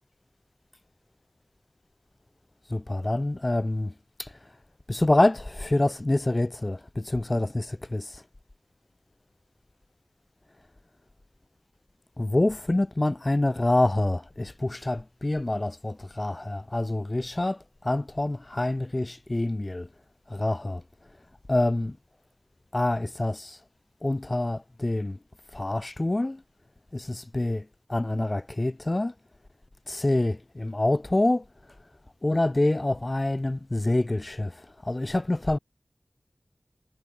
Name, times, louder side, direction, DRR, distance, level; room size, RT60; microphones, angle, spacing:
voice 1, 2.7-3.9 4.2-4.3 4.9-8.2 12.2-17.6 17.8-19.9 20.3-20.8 21.5-22.0 22.7-23.6 24.0-25.2 25.5-26.4 26.9-29.1 29.9-31.4 32.2-34.6 34.8-35.6, left 2 dB, 40° left, 2.7 m, -26 dB
wide cardioid pair, 50°, 0 cm